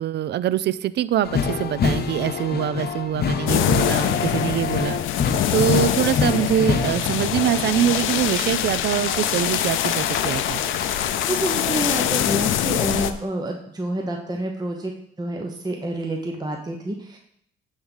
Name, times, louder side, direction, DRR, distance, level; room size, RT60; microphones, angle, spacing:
voice 1, 0.0-5.0 5.5-10.6, right 11 dB, 60° right, 17 dB, 0.4 m, -24 dB
sound 1, 1.2-7.2 8.1-11.8, left 5 dB, 50° left, 0.9 m, -27 dB
sound 2, 3.5-13.1, left 11 dB, 85° left, 0.5 m, -24 dB
voice 2, 11.3-14.9 15.2-17.2, right 2 dB, 20° right, 1 dB, 0.9 m, -28 dB
9.5 x 3.6 x 5.5 m, 0.72 s
cardioid pair, 90°, 20 cm